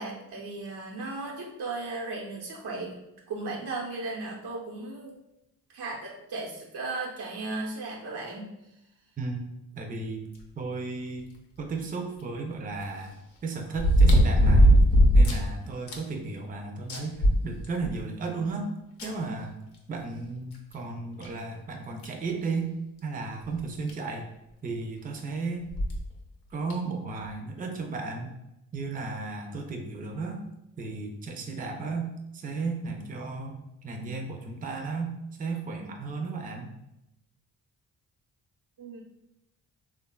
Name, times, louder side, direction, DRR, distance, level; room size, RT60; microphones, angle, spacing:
voice 1, 0.0-3.0 3.3-5.2 5.7-8.5 38.8-39.0, right 3 dB, 80° right, -3 dB, 0.9 m, -36 dB
voice 2, 9.8-10.3 10.6-11.3 11.6-13.1 13.4-14.8 15.1-18.7 19.0-19.5 19.9-22.7 23.0-24.3 24.6-25.7 26.5-28.3 28.7-30.5 30.8-36.7, right 3 dB, 20° right, 3 dB, 0.4 m, -34 dB
sound 1, 11.8-11.9 13.8-15.5 15.9-16.0 16.4-16.5 16.9-18.0 19.0-19.1 20.5-20.6 21.2-21.3 22.0-22.2 23.6-23.7 23.9-24.0 25.7-26.0 26.7-26.8, equal, 85° left, 0.6 m, -19 dB
3.4 x 2.2 x 2.3 m, 0.87 s
supercardioid pair, 60°, 38 cm